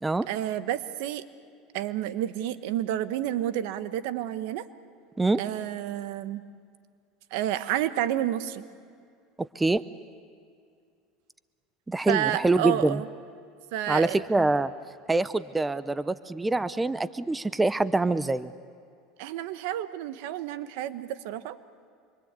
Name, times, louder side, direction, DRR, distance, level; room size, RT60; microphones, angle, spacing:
voice 1, 0.3-1.2 1.7-4.7 5.4-6.4 7.3-8.6 12.1-13.1 13.7-14.2 19.2-21.6, right 12 dB, 75° right, 12 dB, 1.2 m, -30 dB
voice 2, 9.4-9.8 11.9-13.0 13.9-14.7 15.1-18.5, right 2 dB, 10° right, 15 dB, 0.7 m, -25 dB
26.5 x 24.0 x 8.3 m, 2.3 s
supercardioid pair, 115°, 0 cm